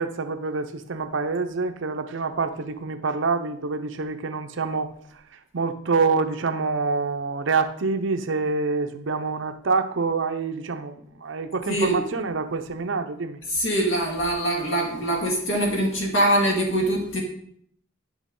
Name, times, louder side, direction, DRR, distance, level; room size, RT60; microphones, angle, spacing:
voice 1, 0.0-13.4, right 4 dB, 60° right, 0.6 m, -26 dB
voice 2, 11.7-12.0 13.5-17.2, right 1 dB, 65° left, 1.9 m, -23 dB
9.9 x 6.1 x 3.7 m
head